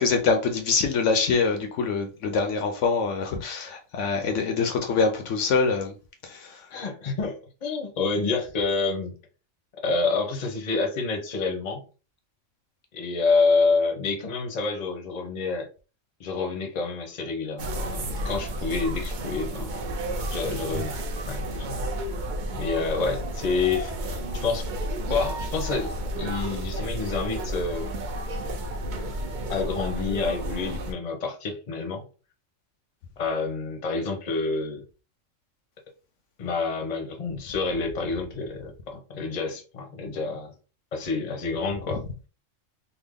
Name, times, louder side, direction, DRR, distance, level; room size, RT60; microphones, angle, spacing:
voice 1, 0.0-5.9 6.2-6.6, left 4 dB, 70° left, 0.9 m, -24 dB
voice 2, 6.7-9.1 9.8-11.8 12.9-15.7 16.2-19.7 20.3-21.0 21.3-21.9 22.5-24.7 25.1-27.9 29.5-32.1 33.2-34.8 36.4-40.5 40.9-42.1, left 4 dB, 40° left, 0.7 m, -28 dB
sound 1, 17.6-30.9, right 1 dB, 55° right, 0.5 m, -31 dB
3.4 x 2.0 x 3.6 m
omnidirectional pair, 1.4 m